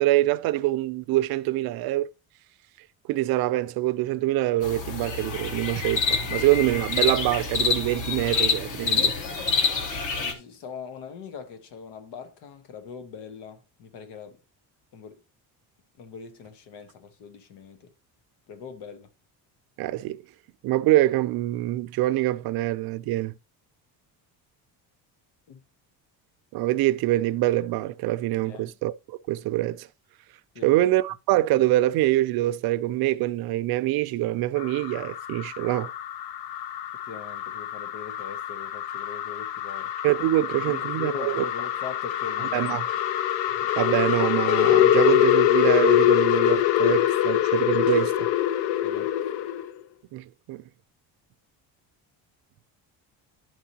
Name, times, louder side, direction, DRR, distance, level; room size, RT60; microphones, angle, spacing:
voice 1, 0.0-2.1 3.1-9.1 19.8-20.2 20.6-23.3 26.5-29.9 30.6-35.9 40.0-41.4 42.5-42.9 43.8-48.3 50.1-50.6, right 16 dB, 65° right, 0.5 m, -25 dB
sound 1, 4.6-10.3, left 5 dB, 50° left, 1.3 m, -27 dB
voice 2, 10.2-14.4 14.9-15.2 16.0-17.9 18.5-19.1 25.5-25.6 28.4-28.7 30.5-30.8 37.1-39.9 40.7-42.9 48.8-49.1, left 6 dB, 90° left, 1.4 m, -41 dB
sound 2, 34.6-49.7, left 12 dB, 75° left, 0.6 m, -24 dB
11.0 x 4.8 x 2.8 m
cardioid pair, 160°, 40 cm